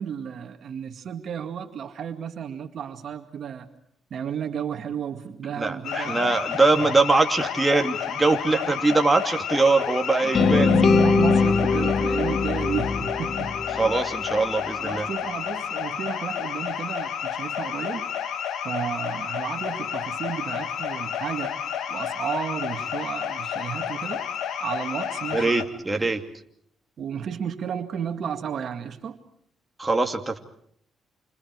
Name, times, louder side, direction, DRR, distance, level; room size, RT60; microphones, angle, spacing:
voice 1, 0.0-3.7 4.1-6.5 6.7-6.8 8.5-9.0 10.2-13.6 14.8-18.1 18.6-21.6 21.9-24.2 24.6-25.6 25.9-26.1 27.0-29.2, right 8 dB, 60° right, 6 dB, 2.1 m, -32 dB
voice 2, 5.6-10.7 13.8-15.1 25.3-26.2 29.8-30.4, right 3 dB, 15° right, 4 dB, 2.5 m, -22 dB
sound 1, 5.8-25.7, left 8 dB, 75° left, 2.2 m, -31 dB
sound 2, 10.3-14.4, left 4 dB, 45° left, 1.8 m, -22 dB
29.0 x 28.0 x 4.7 m, 0.67 s
cardioid pair, 90°, 0 cm